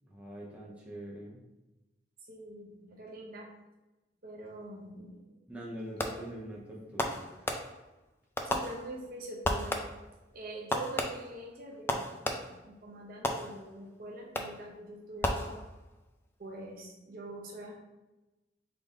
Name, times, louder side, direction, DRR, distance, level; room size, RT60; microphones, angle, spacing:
voice 1, 0.0-1.4 5.5-7.5, right 1 dB, 5° right, -5 dB, 0.7 m, -44 dB
voice 2, 2.2-3.5 4.2-5.4 6.1-6.2 8.5-9.9 10.3-15.6 16.4-17.7, right 1 dB, 50° right, -1 dB, 0.8 m, -44 dB
Fireworks, 6.0-6.4 7.0-8.0 8.4-9.1 9.4-10.1 10.7-12.7 13.2-13.9 14.3-14.7 15.2-16.0, left 1 dB, 10° left, 0.3 m, -34 dB
3.9 x 3.7 x 3.6 m, 1.1 s
head